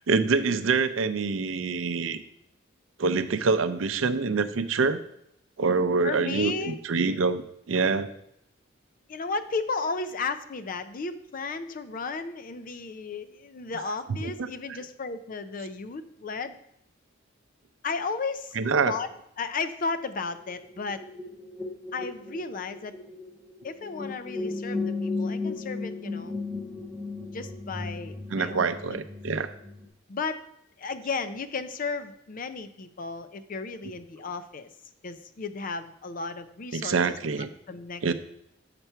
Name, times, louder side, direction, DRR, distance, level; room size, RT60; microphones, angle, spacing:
voice 1, 0.1-2.2 3.0-5.0 5.6-8.1 14.1-14.5 18.6-19.0 28.3-29.5 36.7-37.5 38.0-38.1, right 4 dB, 90° right, 12 dB, 0.5 m, -26 dB
voice 2, 6.0-6.8 7.0-7.2 9.1-16.6 17.8-18.5 18.8-19.1 19.4-21.1 21.9-22.9 23.6-26.4 27.3-29.0 30.1-30.4 30.8-34.7 35.0-37.4 37.7-38.1, left 4 dB, 45° left, 11 dB, 0.5 m, -34 dB
sound 1, 20.3-29.9, left 3 dB, 10° right, 0.8 m, -35 dB
6.9 x 5.9 x 4.5 m, 0.75 s
head